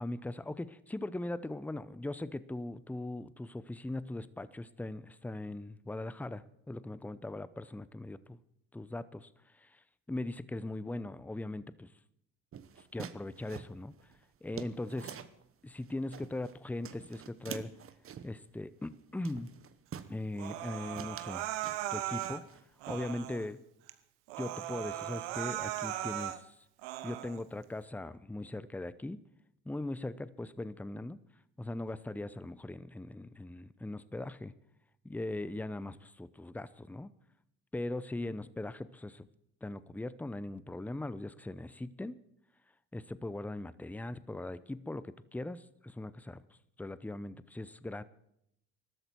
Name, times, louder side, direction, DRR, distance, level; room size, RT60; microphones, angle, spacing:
voice 1, 0.0-8.4 8.7-11.9 12.8-13.9 14.4-15.2 15.6-17.7 18.2-19.5 20.1-21.4 21.9-22.5 22.9-23.6 24.4-26.6 27.0-29.2 29.6-31.2 31.6-34.5 35.0-37.1 37.7-39.3 39.6-42.2 42.9-46.4 46.8-48.0, left 2 dB, 5° left, 16 dB, 0.7 m, -40 dB
sound 1, 12.5-15.4 15.8-16.6 16.8-18.4 18.8-19.0 19.2-20.2 20.6-20.7 21.0-22.6 22.9-23.5, right 8 dB, 40° right, 1.1 m, -47 dB
Human voice, 20.4-22.4 22.8-23.5 23.9-24.0 24.3-26.4 26.8-27.4, right 13 dB, 85° right, 1.1 m, -38 dB
20.0 x 13.0 x 4.6 m, 0.76 s
supercardioid pair, 80°, 34 cm